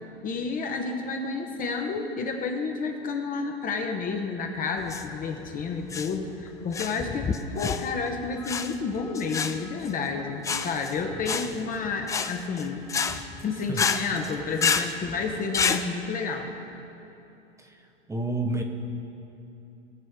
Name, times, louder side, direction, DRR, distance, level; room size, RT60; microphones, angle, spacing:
voice 1, 0.2-12.8 13.1-13.2 13.4-16.5, left 4 dB, 30° left, 3 dB, 1.0 m, -30 dB
sound 1, 4.8-15.8, left 6 dB, 10° left, 0.3 m, -30 dB
voice 2, 18.1-18.6, right 2 dB, 10° right, 3 dB, 0.8 m, -29 dB
19.0 x 6.8 x 3.7 m, 2.9 s
figure-of-eight pair, 85°, 29 cm